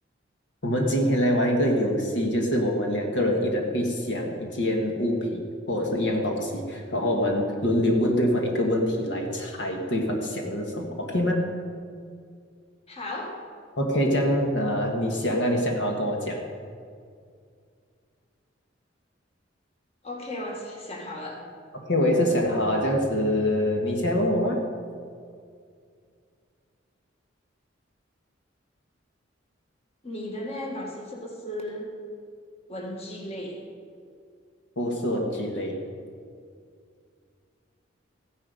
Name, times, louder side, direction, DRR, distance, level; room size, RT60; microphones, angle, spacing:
voice 1, 0.6-11.5 13.8-16.4 21.7-24.6 34.8-35.9, equal, 65° left, 1 dB, 1.7 m, -25 dB
voice 2, 12.9-13.4 20.0-21.4 30.0-31.9 32.7-33.6, left 1 dB, 35° left, 0 dB, 1.8 m, -35 dB
15.0 x 10.5 x 5.2 m, 2.2 s
head